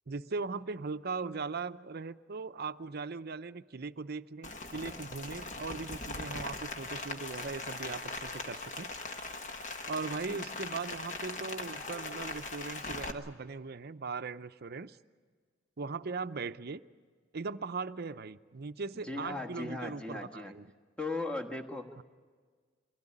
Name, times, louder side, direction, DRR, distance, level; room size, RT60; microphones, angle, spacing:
voice 1, 0.1-8.9 9.9-15.0 15.8-16.8 17.3-20.7 22.0-22.1, right 4 dB, 50° right, 12 dB, 0.6 m, -39 dB
Rain, 4.4-13.1, left 3 dB, 40° left, 1.4 m, -40 dB
voice 2, 19.0-20.5 21.0-22.0, left 2 dB, 5° left, 2 dB, 1.5 m, -38 dB
24.0 x 16.5 x 9.9 m, 1.6 s
head